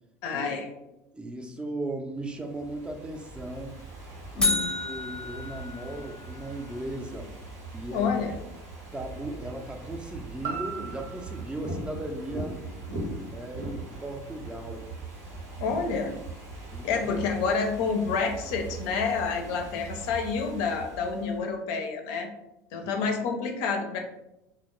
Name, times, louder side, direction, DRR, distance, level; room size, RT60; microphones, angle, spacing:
voice 1, 0.2-0.7 4.4-4.7 7.9-8.3 15.6-16.1 16.8-22.3 22.7-24.0, left 5 dB, 70° left, 4 dB, 0.4 m, -28 dB
voice 2, 1.1-3.8 4.3-4.6 4.8-7.4 7.7-8.1 8.9-12.6 13.3-14.9 16.7-17.3 22.7-22.9, right 1 dB, 15° right, 3 dB, 0.4 m, -37 dB
Ocean / Fireworks, 2.2-21.5, right 2 dB, 85° right, 0.8 m, -41 dB
sound 1, 4.4-6.5, left 3 dB, 10° left, 0.7 m, -30 dB
sound 2, 10.4-14.5 15.0-15.1, right 5 dB, 50° right, 0.7 m, -41 dB
2.1 x 2.0 x 2.9 m, 0.88 s
hypercardioid pair, 85°, 8 cm